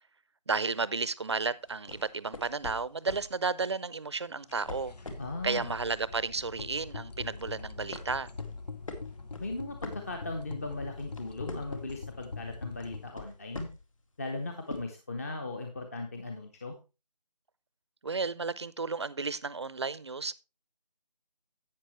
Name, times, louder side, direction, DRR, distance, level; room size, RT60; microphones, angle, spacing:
voice 1, 0.5-4.9 5.4-8.3 18.0-20.3, right 4 dB, 40° right, 0.6 m, -33 dB
sound 1, 1.7-3.3 4.4-5.8 6.2-6.4 6.9-7.5 7.9-10.5 10.9-12.0 12.8-14.0 14.7-14.8, left 2 dB, 50° left, 2.2 m, -44 dB
sound 2, 4.6-13.1, left 4 dB, 75° left, 0.9 m, -43 dB
voice 2, 5.2-5.7 9.4-13.7 14.2-16.8, left 2 dB, 20° left, 0.8 m, -38 dB
11.5 x 8.7 x 3.1 m
figure-of-eight pair, 165°, 21 cm